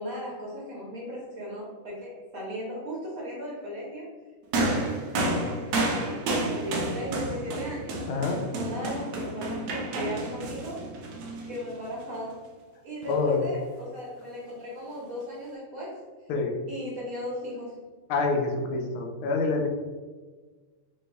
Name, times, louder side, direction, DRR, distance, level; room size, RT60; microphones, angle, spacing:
voice 1, 0.0-4.1 4.5-5.6 5.9-10.8 11.5-12.4 12.8-16.0 16.7-17.8, equal, 50° right, -5 dB, 1.1 m, -37 dB
sound 1, 4.5-12.0 13.0-13.2, right 2 dB, 85° right, 0.8 m, -30 dB
voice 2, 8.1-8.4 13.1-13.4 16.3-16.6 18.1-19.7, left 3 dB, 80° left, 2 dB, 1.4 m, -26 dB
3.4 x 3.1 x 3.3 m, 1.4 s
omnidirectional pair, 2.3 m